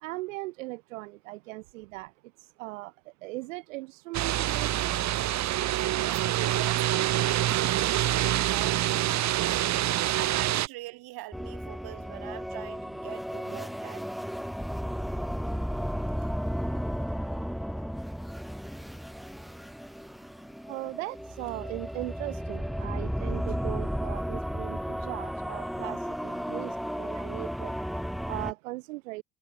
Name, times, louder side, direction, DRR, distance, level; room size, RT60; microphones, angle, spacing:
voice 1, 0.0-2.1 2.6-2.9 3.2-4.9 20.7-26.0 26.2-26.7 27.0-27.7 28.3-29.2, right 22 dB, 90° right, 1.8 m, -38 dB
sound 1, 4.1-10.7, right 13 dB, 45° right, 0.7 m, -26 dB
voice 2, 6.0-9.8 10.1-14.1, right 18 dB, 70° right, 3.0 m, -42 dB
sound 2, 11.3-28.5, equal, ahead, 1.4 m, -34 dB
hypercardioid pair, 65°, 38 cm